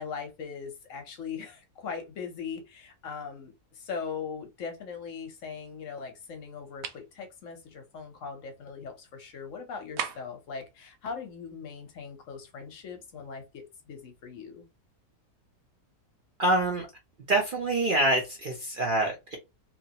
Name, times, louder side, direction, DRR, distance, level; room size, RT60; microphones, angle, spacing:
voice 1, 0.0-14.7, left 6 dB, 65° left, 1.0 m, -40 dB
sound 1, 6.8-7.1 10.0-10.4, right 8 dB, 75° right, 1.0 m, -35 dB
voice 2, 16.4-16.9 17.3-19.4, right 1 dB, 50° right, 0.7 m, -26 dB
2.9 x 2.7 x 2.8 m
omnidirectional pair, 1.6 m